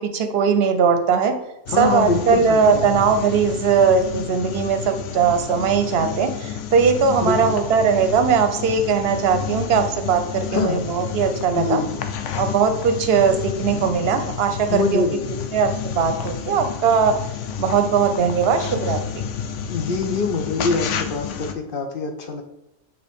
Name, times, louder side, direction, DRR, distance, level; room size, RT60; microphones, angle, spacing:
voice 1, 0.0-1.4 1.8-11.8 12.4-15.0 15.5-17.2 17.6-19.2, right 6 dB, 60° right, 8 dB, 0.8 m, -19 dB
sound 1, 1.7-21.5, left 8 dB, 80° left, 0.9 m, -30 dB
voice 2, 1.7-3.0 7.2-7.6 10.5-10.8 11.5-12.1 14.7-15.5 19.7-22.4, left 4 dB, 55° left, 5 dB, 0.7 m, -24 dB
8.8 x 3.1 x 3.5 m, 0.91 s
omnidirectional pair, 1.3 m